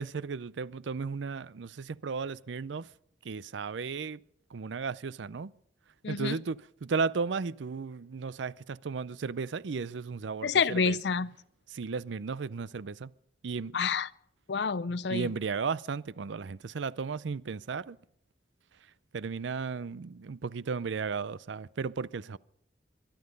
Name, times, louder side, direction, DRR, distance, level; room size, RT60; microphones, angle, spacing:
voice 1, 0.0-2.9 3.2-4.2 4.5-5.5 6.1-11.0 11.7-13.1 13.4-13.8 15.1-18.0 19.1-22.4, right 5 dB, 85° right, 0.5 m, -35 dB
voice 2, 6.0-6.4 10.4-11.3 13.7-14.1 14.5-15.3, left 5 dB, 70° left, 0.5 m, -28 dB
22.5 x 11.5 x 5.3 m
head